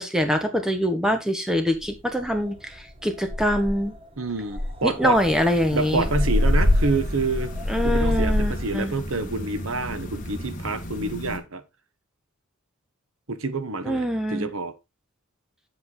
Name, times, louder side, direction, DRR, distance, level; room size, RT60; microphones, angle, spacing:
voice 1, 0.0-3.9 4.8-6.1 7.7-8.9 13.8-14.5, equal, 5° right, 1.5 m, -24 dB
sound 1, 1.8-1.9 2.3-2.6 2.9-3.0 3.3-4.0 4.5-8.7, left 1 dB, 25° right, 1.6 m, -24 dB
voice 2, 4.2-5.2 5.7-7.5 7.8-11.6 13.3-14.7, right 3 dB, 65° right, 1.3 m, -27 dB
sound 2, 5.1-11.4, equal, 35° left, 2.0 m, -35 dB
8.0 x 7.9 x 4.0 m
head